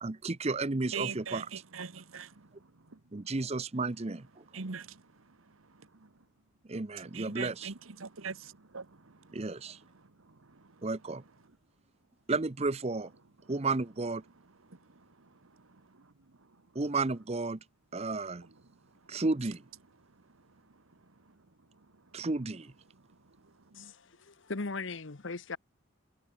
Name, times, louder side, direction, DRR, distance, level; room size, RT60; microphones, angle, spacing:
voice 1, 0.0-1.5 3.1-4.4 6.7-7.7 9.3-9.8 10.8-11.2 12.3-13.1 13.5-14.2 16.7-17.6 17.9-18.4 19.1-19.6 22.1-22.7, right 3 dB, 30° right, 0.7 m, -32 dB
voice 2, 0.9-3.0 4.5-6.1 7.0-9.5 9.9-10.9 14.6-16.1 18.4-18.5 23.7-23.9, right 5 dB, 75° right, 1.3 m, -44 dB
voice 3, 23.7-25.6, left 3 dB, 60° left, 1.0 m, -39 dB
head